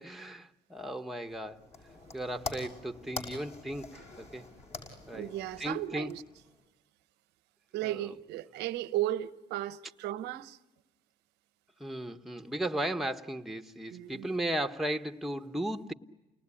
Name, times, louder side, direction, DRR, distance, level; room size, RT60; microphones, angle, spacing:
voice 1, 0.0-1.6 2.1-4.4 5.1-5.3 5.6-6.1 7.8-7.9 11.8-15.9, right 1 dB, ahead, 1.3 m, -36 dB
sound 1, 1.3-6.6, left 2 dB, 40° left, 6.4 m, -45 dB
voice 2, 5.1-6.2 7.7-10.6 13.9-14.3, right 14 dB, 85° right, 1.0 m, -35 dB
30.0 x 19.5 x 9.9 m
cardioid pair, 110°, 17 cm